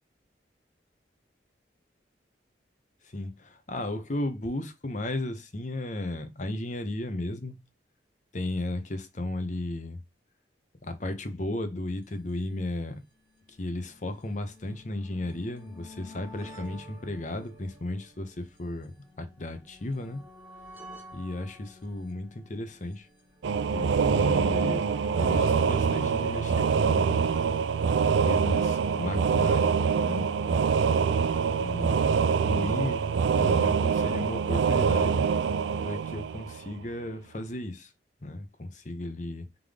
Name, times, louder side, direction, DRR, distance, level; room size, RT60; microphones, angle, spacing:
voice 1, 3.0-7.6 8.3-10.0 10.8-13.0 13.5-20.2 21.1-23.1 23.7-24.9 25.2-27.3 28.2-30.6 31.6-33.1 33.4-35.2 35.8-37.9 38.2-39.5, left 1 dB, 40° left, 0.8 m, -35 dB
sound 1, 12.0-12.1 12.3-12.4 13.2-28.5 29.5-29.6 29.7-29.8, left 1 dB, 10° right, 1.0 m, -50 dB
sound 2, 23.4-36.9, right 6 dB, 85° right, 0.4 m, -25 dB
3.7 x 3.6 x 3.4 m
head